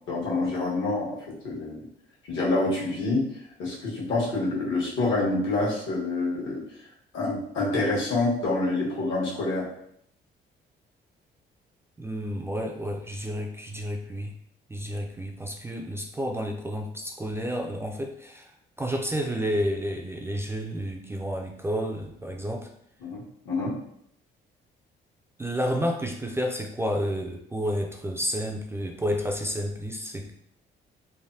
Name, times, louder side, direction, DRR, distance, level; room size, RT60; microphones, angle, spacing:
voice 1, 0.1-1.9 2.3-3.3 3.6-6.6 7.1-9.7 23.0-23.8, left 2 dB, 75° left, -5 dB, 1.3 m, -27 dB
voice 2, 12.0-14.3 14.7-18.5 18.8-22.7 25.4-30.3, equal, 10° right, 1 dB, 0.3 m, -30 dB
3.3 x 2.1 x 2.6 m, 0.72 s
cardioid pair, 90°, 20 cm